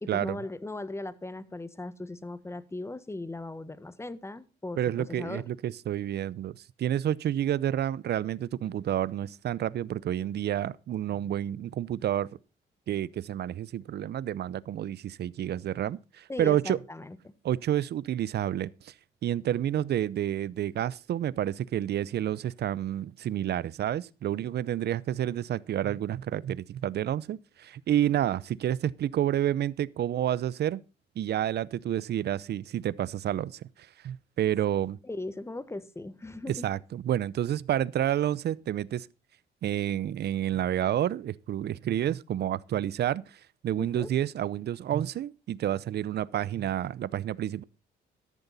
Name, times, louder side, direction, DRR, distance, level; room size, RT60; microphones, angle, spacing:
voice 1, 0.0-5.5 16.3-17.3 35.0-36.7 43.8-44.1, left 2 dB, 15° left, 1.4 m, -38 dB
voice 2, 4.8-12.3 12.9-16.8 17.4-18.9 19.2-30.8 31.2-33.6 34.0-35.0 36.5-39.1 39.6-43.2 43.6-47.6, right 11 dB, 65° right, 0.7 m, -29 dB
13.5 x 11.0 x 4.1 m
cardioid pair, 75°, 19 cm